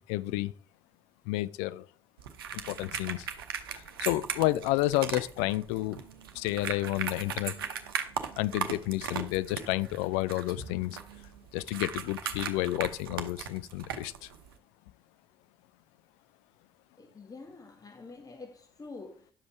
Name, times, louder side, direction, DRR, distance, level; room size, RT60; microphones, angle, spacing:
voice 1, 0.1-0.5 1.3-1.9 2.5-3.3 3.7-6.0 6.3-7.5 8.4-11.0 11.5-14.3, left 17 dB, 70° left, 0.4 m, -30 dB
sound 1, 2.2-14.5, right 8 dB, 80° right, 0.8 m, -38 dB
voice 2, 17.0-19.3, left 3 dB, 30° left, 1.6 m, -47 dB
10.5 x 7.3 x 4.5 m
figure-of-eight pair, 45°, 12 cm